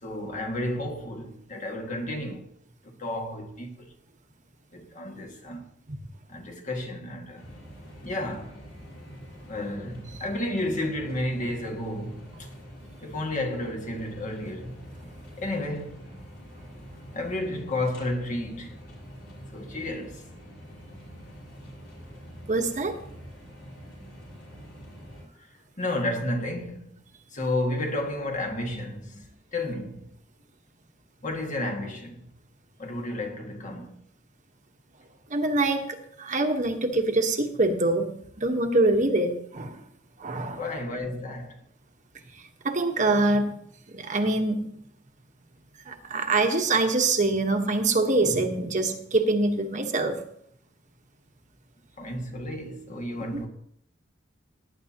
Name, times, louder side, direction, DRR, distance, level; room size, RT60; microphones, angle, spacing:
voice 1, 0.0-2.5 3.0-3.8 4.7-5.6 6.3-7.5 8.0-8.6 9.5-12.5 13.0-14.8 15.4-16.0 17.1-18.8 19.5-20.2 25.8-27.0 27.3-29.3 29.5-30.1 31.2-32.3 32.8-34.0 40.5-41.6 52.0-53.5, left 1 dB, 40° left, 2.0 m, -32 dB
sound 1, 7.4-25.2, equal, 65° left, 5.8 m, -45 dB
voice 2, 22.5-23.0 35.3-38.1 38.4-39.8 40.2-40.7 42.6-43.5 43.9-44.7 45.9-50.2, right 2 dB, 40° right, 1.2 m, -24 dB
18.0 x 10.0 x 2.9 m
head